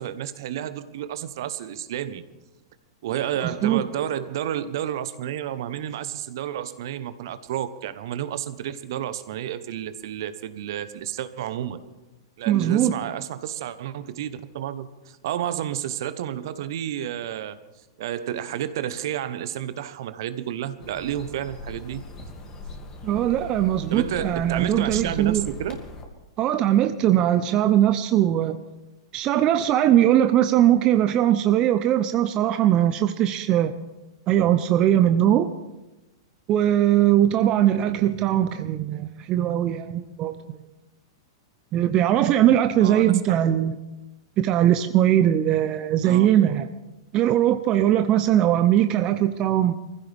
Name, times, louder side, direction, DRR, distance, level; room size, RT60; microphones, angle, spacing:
voice 1, 0.0-2.2 3.0-11.8 12.4-17.6 18.0-22.0 23.9-25.8 42.8-43.4 46.0-46.3, right 11 dB, 60° right, 12 dB, 1.1 m, -31 dB
voice 2, 3.4-3.8 12.5-12.9 23.0-25.5 26.4-28.6 29.1-33.7 34.3-35.5 36.5-40.6 41.7-43.8 44.4-46.7 47.1-49.7, right 11 dB, 35° right, 9 dB, 0.7 m, -20 dB
sound 1, 20.8-26.0, left 2 dB, 25° left, 2.6 m, -39 dB
23.5 x 15.5 x 3.6 m, 1.0 s
hypercardioid pair, 105°, 2 cm